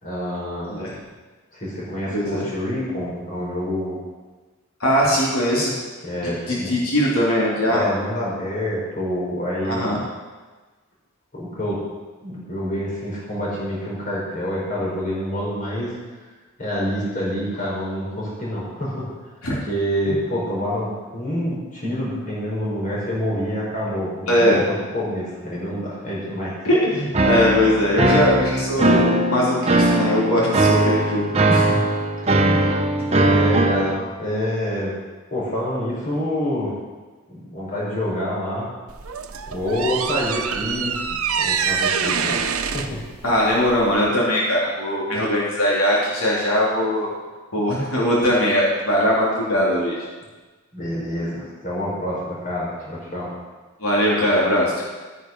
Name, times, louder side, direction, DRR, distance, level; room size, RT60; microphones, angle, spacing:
voice 1, 0.0-0.8 1.5-4.0 6.0-6.7 7.7-10.0 11.3-11.8 12.2-15.9 16.6-19.1 19.7-26.5 31.5-31.8 32.4-32.6 33.1-34.9 35.3-36.7 37.3-38.7 39.5-42.4 42.7-43.0 50.7-53.3, equal, 40° left, -5 dB, 5.1 m, -27 dB
voice 2, 2.1-2.5 4.8-5.7 6.2-7.9 9.6-10.0 19.4-19.6 24.3-24.6 26.6-31.6 43.2-47.1 47.5-50.0 53.8-54.8, equal, 90° left, -5 dB, 3.4 m, -20 dB
sound 1, 27.1-34.0, right 2 dB, 30° right, 0.9 m, -19 dB
sound 2, 38.9-44.1, right 6 dB, 85° right, 0.9 m, -25 dB
13.0 x 9.9 x 5.5 m, 1.3 s
head